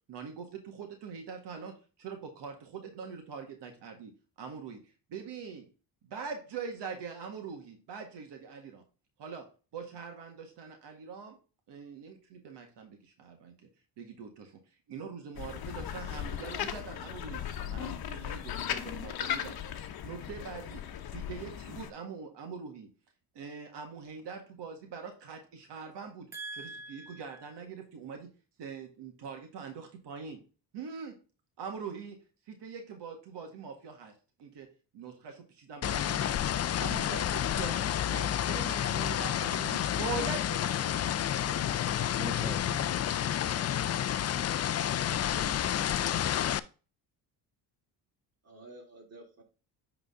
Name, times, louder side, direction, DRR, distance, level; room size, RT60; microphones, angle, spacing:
voice 1, 0.1-5.7 6.0-8.8 9.2-9.5 9.7-11.4 11.7-13.7 14.0-14.6 14.9-17.4 17.7-19.7 20.0-20.8 21.1-22.9 23.4-26.3 26.6-28.3 28.6-30.4 30.7-31.2 31.6-34.1 34.4-34.7 34.9-36.4 36.8-41.1 41.5-42.0, right 5 dB, 65° right, 1.8 m, -43 dB
sound 1, 15.3-21.9, left 9 dB, 55° left, 1.0 m, -37 dB
voice 2, 26.3-27.5 42.1-43.3, right 1 dB, 5° right, 0.9 m, -42 dB
sound 2, 35.8-46.6, left 10 dB, 35° left, 0.5 m, -30 dB
voice 3, 44.8-45.8 48.4-49.4, right 2 dB, 35° right, 3.2 m, -51 dB
9.2 x 4.0 x 3.7 m
supercardioid pair, 70°, 44 cm